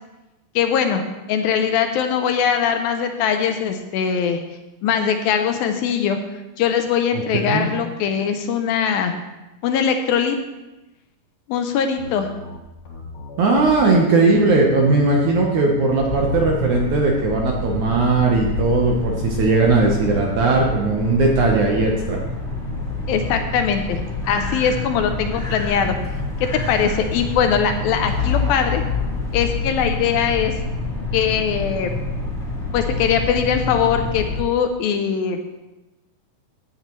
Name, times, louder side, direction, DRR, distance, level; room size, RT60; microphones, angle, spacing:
voice 1, 0.6-4.4 4.8-6.2 6.6-9.2 9.6-10.4 11.5-12.3 23.1-24.0 24.3-26.0 26.4-28.8 29.3-30.5 31.1-31.9 32.7-35.4, left 7 dB, 75° left, 6 dB, 2.4 m, -21 dB
voice 2, 7.1-7.7 13.4-22.2, right 3 dB, 65° right, 0 dB, 2.0 m, -18 dB
sound 1, 12.0-17.0, left 1 dB, 55° left, 2.8 m, -37 dB
sound 2, 16.0-34.4, left 3 dB, 15° left, 3.3 m, -27 dB
16.5 x 8.9 x 3.1 m, 1.0 s
omnidirectional pair, 4.5 m